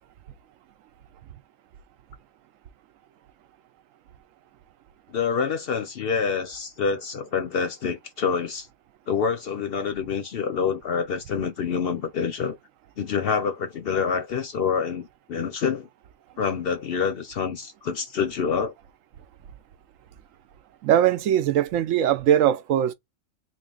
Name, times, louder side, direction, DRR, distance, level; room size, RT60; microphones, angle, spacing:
voice 1, 5.1-8.7 9.1-12.6 13.0-15.9 16.4-18.7, left 6 dB, 60° left, 0.7 m, -27 dB
voice 2, 20.8-22.9, right 10 dB, 75° right, 1.0 m, -21 dB
3.7 x 2.5 x 3.7 m
omnidirectional pair, 1.4 m